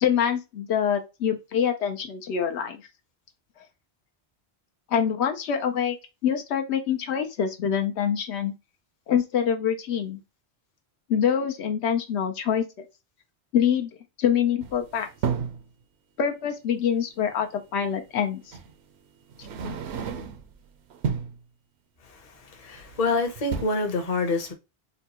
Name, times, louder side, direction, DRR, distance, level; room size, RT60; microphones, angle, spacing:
voice 1, 0.0-2.8 4.9-6.0 6.2-8.5 9.1-10.2 11.1-12.8 13.5-13.9 14.2-15.1 16.2-18.4, left 8 dB, 85° left, 0.9 m, -25 dB
sound 1, 14.6-15.7 17.3-17.4 18.5-18.7 19.3-20.5 20.9-21.4 22.7-23.1 23.4-23.6, right 6 dB, 80° right, 0.8 m, -31 dB
voice 2, 22.4-24.5, left 3 dB, 40° left, 0.7 m, -26 dB
4.0 x 2.2 x 2.8 m
omnidirectional pair, 1.1 m